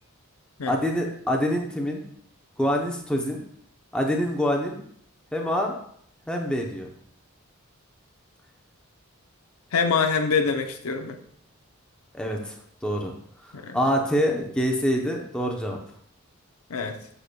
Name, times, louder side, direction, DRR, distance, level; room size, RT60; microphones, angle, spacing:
voice 1, 0.7-2.0 2.6-3.4 3.9-4.8 5.3-5.7 6.3-6.9 12.1-12.6 12.8-13.1 13.7-15.8, equal, 5° left, 1 dB, 0.7 m, -25 dB
voice 2, 9.7-11.2 13.5-13.8 16.7-17.0, left 5 dB, 75° left, 5 dB, 0.7 m, -25 dB
7.6 x 6.6 x 2.2 m, 0.66 s
head